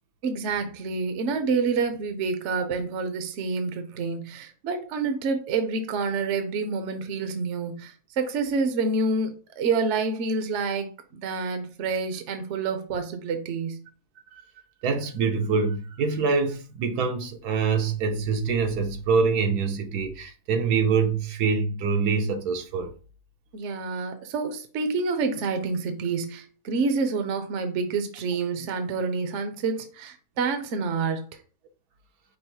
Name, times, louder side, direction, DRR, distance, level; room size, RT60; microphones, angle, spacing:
voice 1, 0.2-9.3 9.6-13.8 23.5-31.2, right 4 dB, 60° right, 0.9 m, -28 dB
voice 2, 14.8-22.9, right 5 dB, 80° right, 1.3 m, -25 dB
5.5 x 2.0 x 4.3 m
omnidirectional pair, 1.6 m